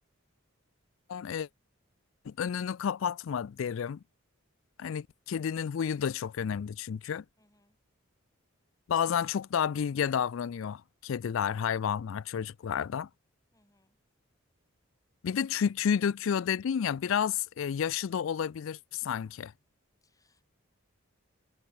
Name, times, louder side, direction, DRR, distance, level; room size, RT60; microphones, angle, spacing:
voice 1, 1.1-1.5 2.3-4.0 4.8-7.2 8.9-13.1 15.2-19.5, left 7 dB, 70° left, 0.4 m, -31 dB
voice 2, 7.4-7.8 13.5-14.0 20.0-20.5, left 1 dB, 15° left, 6.3 m, -70 dB
head